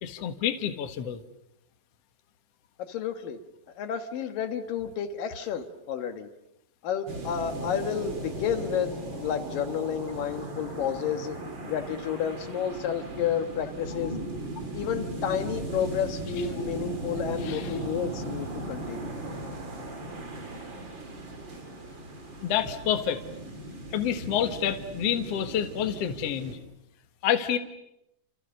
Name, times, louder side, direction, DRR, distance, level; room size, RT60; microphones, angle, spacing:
voice 1, 0.0-1.2 17.4-17.7 22.4-23.2 23.9-26.6 27.2-27.6, left 9 dB, 55° left, 7 dB, 2.3 m, -28 dB
voice 2, 2.8-3.4 3.8-6.3 6.8-11.4 11.7-14.2 14.7-19.2, left 8 dB, 80° left, 8 dB, 3.1 m, -31 dB
sound 1, 7.1-26.6, right 2 dB, 35° right, 4.1 m, -37 dB
30.0 x 28.5 x 6.6 m, 0.85 s
omnidirectional pair, 3.9 m